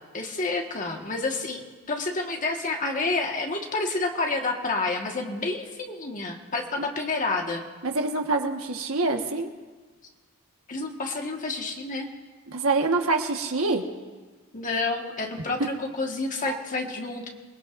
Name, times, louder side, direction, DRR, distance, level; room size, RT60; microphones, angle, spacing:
voice 1, 0.1-7.7 10.7-12.1 14.5-17.3, left 3 dB, 35° left, 1 dB, 1.6 m, -29 dB
voice 2, 7.8-9.5 12.5-13.8 16.5-16.6, right 3 dB, 65° right, 3 dB, 1.4 m, -25 dB
26.5 x 20.5 x 2.6 m, 1.4 s
head